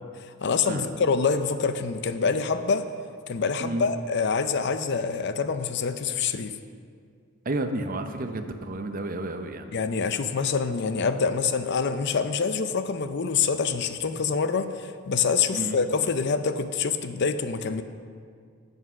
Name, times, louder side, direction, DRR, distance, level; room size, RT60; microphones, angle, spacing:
voice 1, 0.4-2.9 3.3-6.5 9.7-17.8, left 5 dB, 55° left, 10 dB, 0.5 m, -26 dB
voice 2, 7.5-9.7 15.5-15.8, right 2 dB, 40° right, 7 dB, 0.7 m, -31 dB
9.5 x 8.1 x 6.0 m, 2.1 s
head